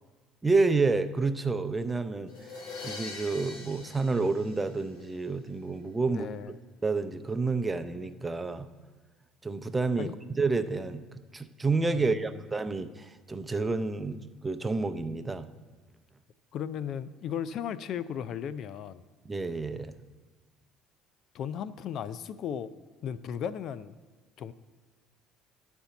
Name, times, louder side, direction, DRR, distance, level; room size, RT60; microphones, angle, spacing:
voice 1, 0.4-2.3 2.8-6.3 6.8-8.7 9.4-10.1 10.4-11.1 11.3-15.5 19.2-19.9, right 3 dB, 20° right, 11 dB, 0.6 m, -29 dB
sound 1, 2.3-5.2, left 3 dB, 80° left, 2.0 m, -43 dB
voice 2, 6.1-6.5 10.0-10.1 11.9-12.4 16.5-19.0 21.3-22.7 23.0-23.9 24.4-24.5, left 8 dB, 60° left, 15 dB, 0.4 m, -36 dB
11.0 x 4.4 x 7.0 m, 1.4 s
supercardioid pair, 85°, 0 cm